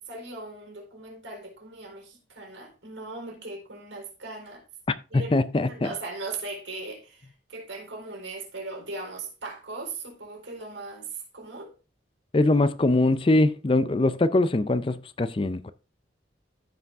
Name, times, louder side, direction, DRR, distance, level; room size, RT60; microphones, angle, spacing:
voice 1, 0.1-4.6 5.1-5.3 5.7-11.7, right 3 dB, 80° right, 4.6 m, -38 dB
voice 2, 5.1-5.9 12.3-15.7, left 2 dB, 30° left, 0.4 m, -22 dB
15.0 x 5.1 x 3.5 m
head